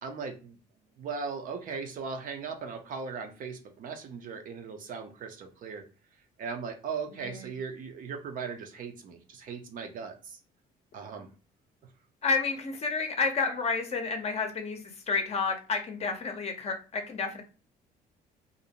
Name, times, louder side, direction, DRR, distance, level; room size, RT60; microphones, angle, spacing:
voice 1, 0.0-0.6 0.9-5.9 6.4-10.4 10.9-11.3, right 5 dB, 55° right, 6 dB, 0.6 m, -38 dB
voice 2, 12.2-17.4, left 4 dB, 40° left, 5 dB, 0.6 m, -30 dB
2.5 x 2.0 x 2.8 m, 0.35 s
cardioid pair, 110°, 17 cm